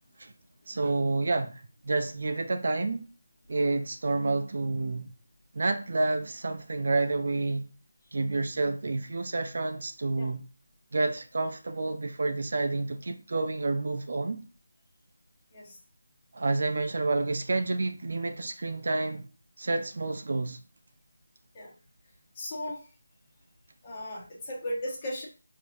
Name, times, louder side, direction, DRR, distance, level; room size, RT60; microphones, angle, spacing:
voice 1, 0.7-3.0 3.5-5.1 5.5-7.6 8.1-10.4 10.9-14.4 16.3-19.3 19.6-20.6, right 3 dB, 55° right, 0.4 m, -29 dB
voice 2, 22.3-22.8 23.8-25.3, left 1 dB, 25° left, 1.2 m, -36 dB
4.6 x 3.0 x 2.6 m
figure-of-eight pair, 160°, 0 cm